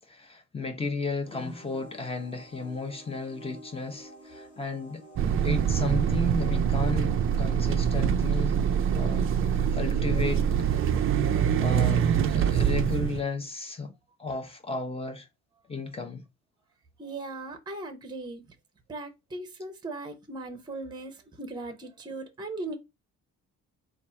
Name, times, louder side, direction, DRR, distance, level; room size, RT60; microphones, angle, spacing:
voice 1, 0.1-5.0 5.4-8.6 8.9-10.8 11.6-13.9 14.2-15.3 15.7-16.2, left 3 dB, 20° left, 0.9 m, -34 dB
sound 1, 1.2-9.8, left 2 dB, 50° left, 2.7 m, -49 dB
sound 2, 5.2-13.2, right 8 dB, 40° right, 0.5 m, -24 dB
voice 2, 17.0-18.4 18.9-22.8, right 2 dB, 15° right, 0.8 m, -38 dB
4.1 x 2.5 x 4.3 m
cardioid pair, 150°, 32 cm